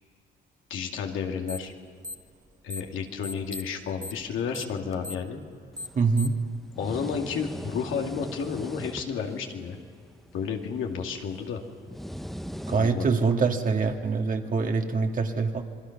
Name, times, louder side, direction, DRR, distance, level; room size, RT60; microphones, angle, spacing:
voice 1, 0.7-1.7 2.6-5.4 6.8-9.8 10.3-11.6 12.8-13.1, left 6 dB, 85° left, 2 dB, 2.3 m, -31 dB
sound 1, 1.5-1.7 2.0-2.9 3.2-6.5, left 2 dB, 15° right, 1.4 m, -38 dB
sound 2, 5.7-13.2, equal, ahead, 1.0 m, -41 dB
voice 2, 5.9-6.3 12.7-15.6, right 4 dB, 45° right, 3 dB, 2.1 m, -24 dB
27.5 x 21.0 x 6.0 m, 2.1 s
cardioid pair, 90°, 20 cm